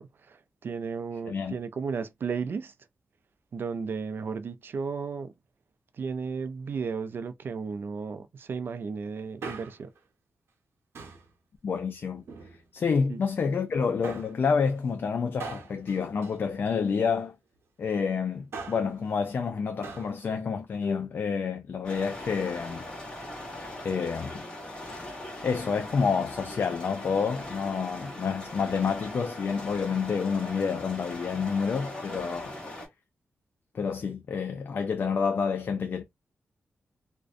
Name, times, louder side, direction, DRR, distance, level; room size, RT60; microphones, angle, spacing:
voice 1, 0.0-2.7 3.5-5.3 5.9-9.9 13.1-13.2, right 5 dB, 60° right, 0.3 m, -34 dB
Male speech man speaking, 9.2-10.0 10.9-11.3 12.1-12.9 14.0-14.4 15.4-17.1 18.3-19.0 19.8-20.2 20.4-20.5, right 4 dB, 80° right, 0.8 m, -42 dB
voice 2, 11.6-12.3 12.7-17.3 17.8-22.8 23.8-24.4 25.4-32.6 33.7-36.0, left 5 dB, 55° left, 0.3 m, -28 dB
sound 1, 21.8-32.9, left 1 dB, 20° left, 1.0 m, -40 dB
2.5 x 2.1 x 2.4 m
wide cardioid pair, 100°, 4 cm